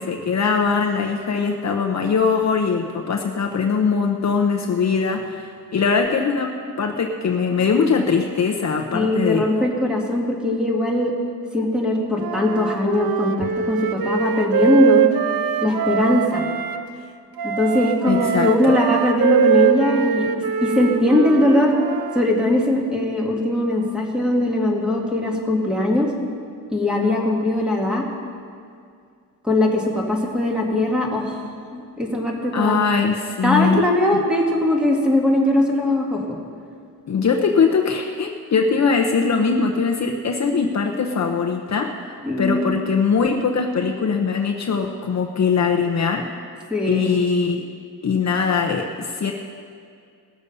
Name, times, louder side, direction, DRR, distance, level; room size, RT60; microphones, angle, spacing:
voice 1, 0.0-9.5 18.1-18.8 32.5-33.8 37.1-42.0 42.4-46.2 46.8-47.6 48.0-49.3, left 5 dB, 45° left, 2 dB, 0.8 m, -21 dB
voice 2, 8.9-11.1 11.5-15.1 15.6-16.5 17.4-20.3 20.6-21.8 22.1-26.1 26.7-28.0 29.4-31.4 31.7-32.7 33.4-36.4 42.2-42.8 46.7-47.2, left 1 dB, ahead, -2 dB, 2.0 m, -20 dB
Wind instrument woodwind instrument, 12.2-16.8 17.4-22.2, right 8 dB, 70° right, 0.7 m, -22 dB
19.0 x 6.9 x 5.5 m, 2.3 s
wide cardioid pair, 140°, 37 cm